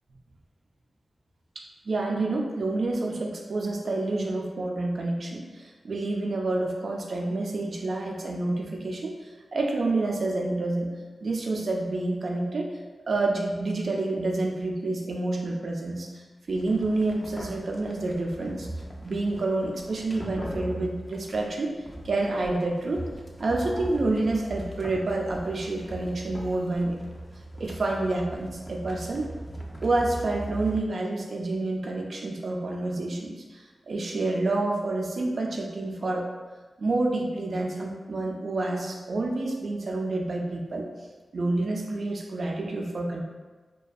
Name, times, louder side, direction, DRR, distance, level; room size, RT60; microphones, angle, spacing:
voice 1, 1.6-10.9 11.2-12.7 13.1-18.7 19.0-21.7 22.0-23.1 23.4-27.0 27.6-29.3 29.8-36.3 36.8-40.9 41.3-43.2, right 2 dB, 70° right, 0 dB, 0.3 m, -28 dB
sound 1, 16.5-30.8, right 1 dB, 20° left, 0.4 m, -40 dB
2.5 x 2.2 x 2.3 m, 1.3 s
wide cardioid pair, 70°, 0 cm